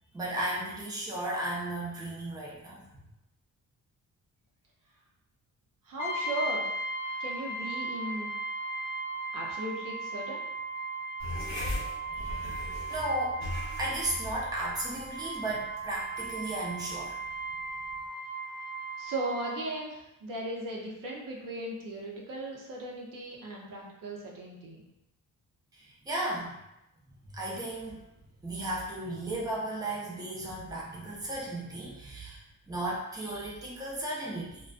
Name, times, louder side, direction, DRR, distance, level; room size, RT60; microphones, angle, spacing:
voice 1, 0.1-2.8 12.1-12.3 12.9-13.4 13.8-17.2 26.1-26.6 27.3-28.0 28.4-32.4 32.7-34.6, right 1 dB, 10° right, -5 dB, 0.5 m, -34 dB
voice 2, 5.9-6.7 7.2-8.3 9.3-10.4 19.0-24.8, right 1 dB, 70° right, -3 dB, 0.7 m, -37 dB
Brass instrument, 6.0-19.6, right 2 dB, 60° left, 0.5 m, -37 dB
sound 1, 11.2-18.1, left 1 dB, 35° left, 1.0 m, -40 dB
2.4 x 2.2 x 2.4 m, 0.89 s
cardioid pair, 110°, 33 cm